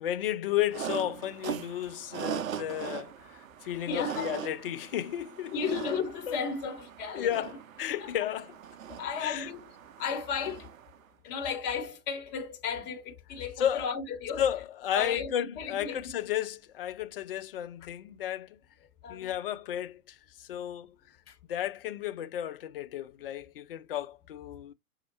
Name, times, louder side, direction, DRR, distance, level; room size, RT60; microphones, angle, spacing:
voice 1, 0.0-5.5 6.3-6.4 7.1-8.5 9.2-9.5 13.6-13.9 14.4-18.6 19.1-21.0 21.5-24.7, left 11 dB, 40° left, 0.5 m, -33 dB
sound 1, 0.7-11.0, right 9 dB, 60° right, 0.6 m, -41 dB
voice 2, 3.9-4.3 5.5-7.3 8.0-8.1 9.0-9.7 10.0-10.7 11.2-14.5 14.9-15.3 15.6-16.1 19.0-19.3 21.3-21.4, left 6 dB, 20° left, 1.2 m, -34 dB
6.3 x 2.4 x 2.9 m
figure-of-eight pair, 120°, 46 cm